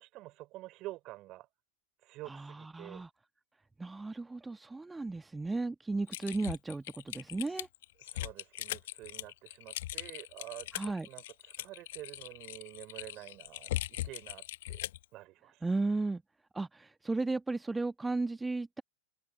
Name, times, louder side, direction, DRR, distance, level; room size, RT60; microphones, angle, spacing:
voice 1, 0.0-1.5 2.0-3.0 8.0-11.2 11.6-14.8 15.1-15.6, right 18 dB, 35° right, 3.5 m, -48 dB
voice 2, 2.3-3.1 3.8-7.7 10.7-11.1 15.6-16.2 16.5-18.8, right 3 dB, 10° right, 1.4 m, -35 dB
Typing, 6.1-15.0, left 15 dB, 55° left, 1.2 m, -40 dB
open air
figure-of-eight pair, 90°, 0 cm